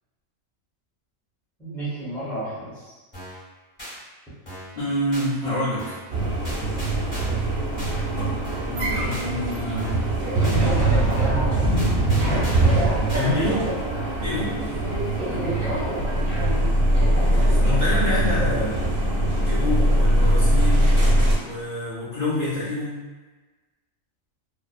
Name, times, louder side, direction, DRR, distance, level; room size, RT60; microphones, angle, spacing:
voice 1, 1.6-2.9 10.4-13.8 14.6-14.8 15.2-16.1, right 2 dB, ahead, -10 dB, 0.7 m, -32 dB
sound 1, 3.1-3.4 3.8-3.9 4.5-4.8 5.1-5.3 5.8-6.1 6.4-7.4 7.8-7.9 8.4-8.8 9.1-9.3 9.8-10.1 10.4-10.6 11.1-11.4 11.8-12.7 13.1-13.3, equal, 20° left, 1.3 m, -38 dB
voice 2, 4.8-6.0 8.7-10.0 13.1-13.7 14.2-14.6 17.0-18.8 19.4-21.0 21.4-23.0, left 1 dB, 45° left, -12 dB, 0.7 m, -27 dB
sound 2, 6.1-21.3, right 1 dB, 50° right, 0.8 m, -21 dB
2.8 x 2.0 x 2.3 m, 1.2 s
omnidirectional pair, 1.4 m